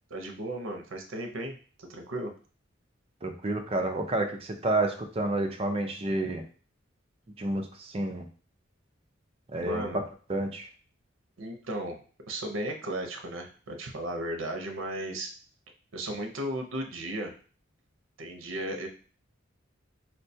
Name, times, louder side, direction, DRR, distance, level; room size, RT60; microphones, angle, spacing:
voice 1, 0.1-2.3 9.6-10.0 11.4-12.0 12.3-15.3 15.9-17.3 18.2-18.9, right 1 dB, 80° right, 4 dB, 0.6 m, -35 dB
voice 2, 3.2-6.4 7.4-8.2 9.5-9.9 10.3-10.7, right 2 dB, 30° right, 5 dB, 0.4 m, -29 dB
4.4 x 2.2 x 2.6 m, 0.40 s
head